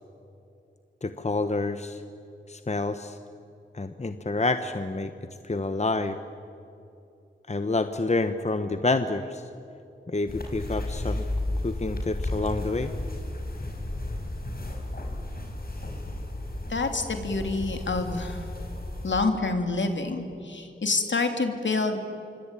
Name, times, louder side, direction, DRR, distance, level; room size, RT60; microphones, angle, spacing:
voice 1, 1.0-2.0 2.5-3.2 3.7-5.1 5.4-6.2 7.5-9.5 10.1-11.3 11.6-12.9, left 3 dB, 35° left, 9 dB, 1.1 m, -28 dB
sound 1, 10.3-19.2, left 1 dB, 50° left, 5.5 m, -33 dB
voice 2, 16.7-18.4 19.0-22.0, left 3 dB, 70° left, 5 dB, 3.0 m, -27 dB
26.5 x 24.0 x 9.1 m, 2.8 s
wide cardioid pair, 60°, 20 cm